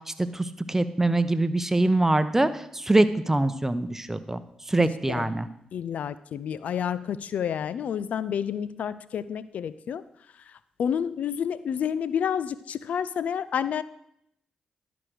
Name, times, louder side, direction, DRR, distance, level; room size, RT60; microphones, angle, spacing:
voice 1, 0.3-4.4 4.7-5.5, right 2 dB, 15° right, 12 dB, 0.9 m, -23 dB
voice 2, 5.7-10.0 10.5-10.6 10.8-13.8, left 8 dB, 75° left, 17 dB, 0.4 m, -29 dB
12.0 x 5.1 x 6.3 m, 0.75 s
supercardioid pair, 45°, 3 cm